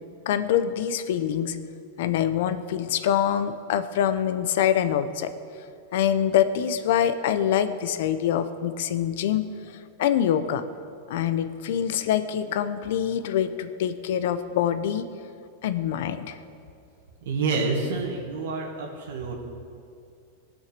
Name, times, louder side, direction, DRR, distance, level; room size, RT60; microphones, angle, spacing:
voice 1, 0.3-1.6 2.0-5.3 5.9-9.5 10.0-10.6 11.1-15.1 15.6-16.4, left 9 dB, 65° left, 11 dB, 0.8 m, -25 dB
voice 2, 17.2-19.3, right 4 dB, 80° right, -2 dB, 1.9 m, -28 dB
19.0 x 6.3 x 6.8 m, 2.4 s
supercardioid pair, 140°, 0 cm